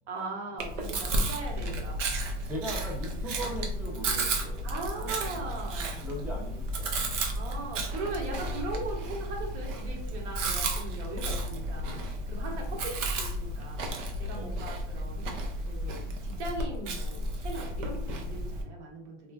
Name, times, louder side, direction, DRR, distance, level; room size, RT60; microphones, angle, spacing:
voice 1, 0.1-2.0 2.3-2.4 4.6-6.1 7.3-15.2 15.7-19.3, right 3 dB, 70° right, 0 dB, 1.1 m, -39 dB
Chewing mastication, 0.6-18.6, right 1 dB, 90° right, 0.7 m, -33 dB
voice 2, 1.5-1.9 2.4-4.7 5.0-5.5 6.0-7.3 12.5-12.7 14.3-14.7, equal, 5° right, -3 dB, 0.4 m, -40 dB
3.1 x 2.4 x 2.2 m, 0.68 s
hypercardioid pair, 135°, 36 cm